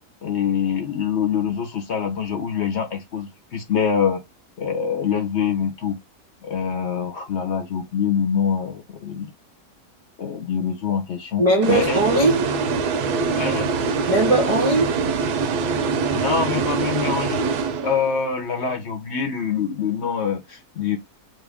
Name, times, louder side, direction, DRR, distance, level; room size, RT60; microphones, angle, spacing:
voice 1, 0.2-4.2 4.6-6.0 6.4-9.3 10.2-12.0 13.4-13.7 16.1-17.5 17.8-21.0, left 7 dB, 55° left, 0.9 m, -25 dB
voice 2, 11.4-12.5 14.1-15.0, right 1 dB, 40° right, 0.4 m, -19 dB
sound 1, 11.6-18.3, right 5 dB, 85° right, 1.2 m, -24 dB
3.0 x 2.5 x 3.4 m
omnidirectional pair, 1.6 m